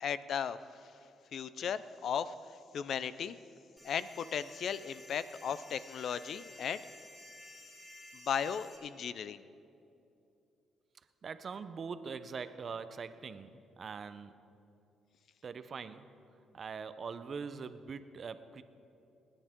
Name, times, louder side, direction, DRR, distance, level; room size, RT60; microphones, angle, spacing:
voice 1, 0.0-0.6 1.3-2.3 2.7-3.4 3.8-6.8 8.3-9.4, left 8 dB, 65° left, 15 dB, 0.5 m, -36 dB
sound 1, 3.8-8.8, left 1 dB, 10° left, 3.9 m, -53 dB
voice 2, 11.2-14.3 15.4-16.1 16.5-18.6, right 5 dB, 45° right, 12 dB, 0.7 m, -42 dB
27.5 x 10.0 x 3.7 m, 2.7 s
cardioid pair, 90°, 0 cm